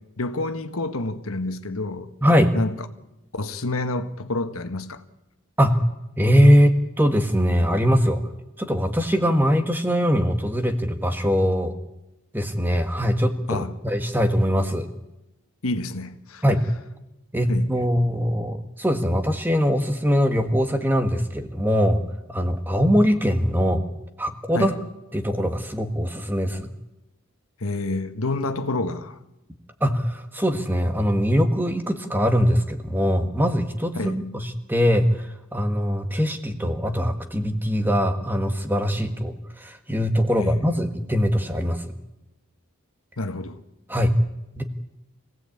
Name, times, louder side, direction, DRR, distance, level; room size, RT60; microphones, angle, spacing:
voice 1, 0.2-2.1 2.5-2.7 3.3-5.0 13.5-13.7 15.6-16.4 17.5-17.7 24.5-24.7 27.6-29.2 33.9-34.2 40.4-40.6 43.2-43.6, left 2 dB, 85° left, 1.4 m, -28 dB
voice 2, 2.2-2.5 5.6-5.8 6.2-8.2 8.6-11.7 12.3-14.9 16.4-16.6 17.3-22.0 22.3-23.8 24.2-24.8 25.1-26.7 29.8-41.9 43.9-44.1 44.5-44.6, equal, 10° right, 1.5 m, -22 dB
25.5 x 17.0 x 8.6 m
head